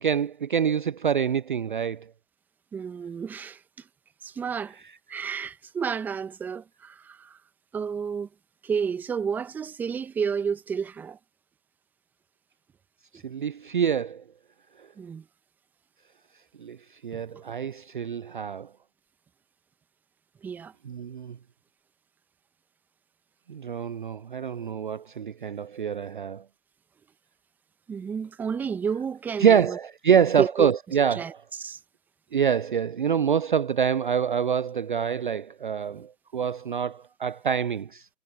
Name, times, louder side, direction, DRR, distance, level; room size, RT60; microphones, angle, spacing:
voice 1, 0.0-2.1 13.1-14.2 14.8-14.9 16.6-16.8 17.0-18.7 20.8-21.4 23.5-26.4 29.4-31.4 32.3-38.1, right 7 dB, 45° right, 0.5 m, -26 dB
voice 2, 2.7-3.6 4.2-4.8 5.1-7.4 7.7-8.3 8.6-11.2 15.0-15.2 20.4-20.7 27.9-29.8 30.1-30.7 31.2-31.3 31.6-31.8, right 6 dB, 5° right, 1.2 m, -31 dB
figure-of-eight pair, 145°, 35 cm